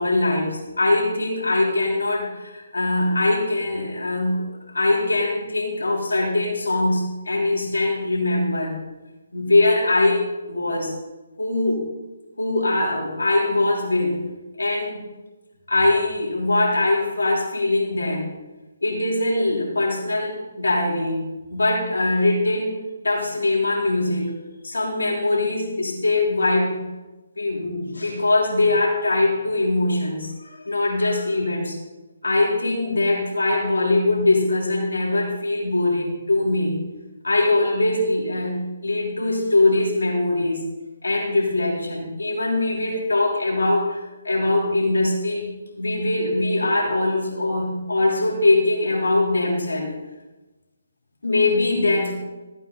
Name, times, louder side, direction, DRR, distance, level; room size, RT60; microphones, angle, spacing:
voice 1, 0.0-4.5 4.7-8.8 9.3-10.9 11.4-11.8 12.4-14.2 14.6-15.0 15.7-18.3 18.8-22.8 23.0-24.4 24.6-26.8 27.4-31.8 32.2-36.8 37.2-40.7 41.0-44.0 44.2-45.5 45.8-49.9 51.2-52.1, left 2 dB, 80° left, -2 dB, 3.3 m, -22 dB
14.5 x 9.0 x 4.0 m, 1.1 s
figure-of-eight pair, 145°, 0 cm